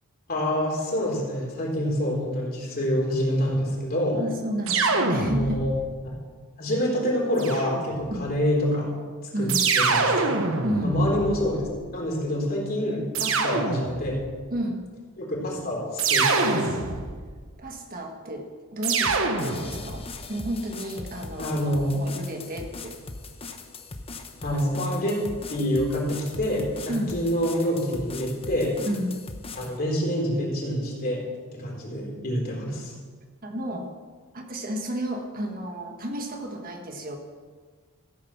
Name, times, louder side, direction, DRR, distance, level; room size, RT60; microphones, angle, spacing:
voice 1, 0.3-4.2 5.2-5.7 6.6-8.9 9.4-9.5 9.8-10.3 10.8-11.6 11.9-14.2 15.2-16.7 21.4-22.0 24.4-25.2 25.5-28.8 29.6-31.2 31.5-32.9, equal, 45° left, -2 dB, 3.7 m, -26 dB
voice 2, 4.1-5.7 8.1-8.3 9.3-9.7 10.6-11.0 14.5-14.9 17.6-21.5 21.9-23.0 26.9-27.2 28.9-29.2 33.4-33.9 34.3-37.2, equal, 40° right, 3 dB, 1.4 m, -32 dB
sound 1, 4.7-5.9 7.4-8.2 9.5-11.8 13.1-14.3 16.0-17.3 18.8-20.0, right 4 dB, 65° right, 1.2 m, -25 dB
sound 2, 19.1-29.8, left 3 dB, 25° left, 0.9 m, -40 dB
15.0 x 8.7 x 5.9 m, 1.5 s
head